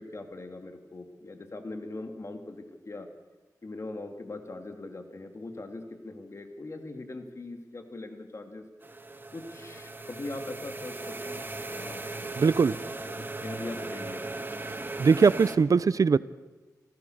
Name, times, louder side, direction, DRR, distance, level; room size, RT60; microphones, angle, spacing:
voice 1, 0.0-3.1 3.6-8.7 9.3-12.3 13.1-14.3, left 2 dB, 45° left, 6 dB, 3.0 m, -41 dB
sound 1, 8.8-15.6, right 2 dB, 30° right, 1.9 m, -38 dB
voice 2, 12.4-12.7 15.0-16.2, right 5 dB, 60° right, 18 dB, 0.6 m, -21 dB
28.0 x 15.5 x 6.7 m, 1.2 s
cardioid pair, 60°, 7 cm